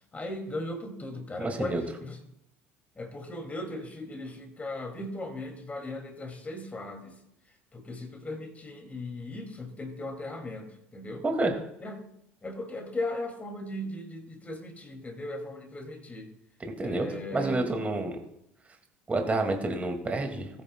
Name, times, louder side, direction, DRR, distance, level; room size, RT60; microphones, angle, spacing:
voice 1, 0.1-2.2 3.0-7.2 7.7-11.2 11.8-12.0 12.4-16.3 16.8-17.6, left 1 dB, 25° left, 3 dB, 2.3 m, -37 dB
voice 2, 1.4-1.8 11.2-11.5 16.6-18.2 19.1-20.5, right 2 dB, 20° right, 3 dB, 2.0 m, -29 dB
19.5 x 9.2 x 2.2 m, 0.79 s
hypercardioid pair, 65°, 6 cm